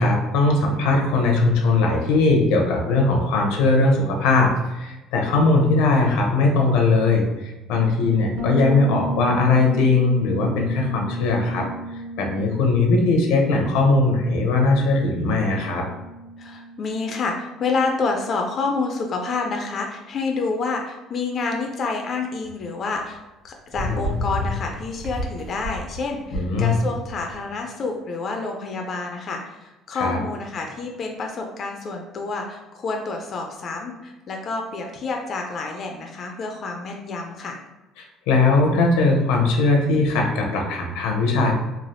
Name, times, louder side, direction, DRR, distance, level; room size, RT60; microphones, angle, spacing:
voice 1, 0.0-11.7 12.2-15.9 26.3-26.8 29.9-30.2 38.3-41.6, left 3 dB, 85° left, 1 dB, 0.6 m, -19 dB
Bass guitar, 8.4-18.0, right 2 dB, 80° right, 0.7 m, -34 dB
voice 2, 16.4-23.2 23.4-37.6, left 3 dB, 40° left, 2 dB, 0.3 m, -28 dB
sound 1, 22.4-22.5 23.7-27.3, left 2 dB, 25° right, 0.9 m, -29 dB
3.2 x 2.3 x 2.5 m, 1.0 s
cardioid pair, 135°, 0 cm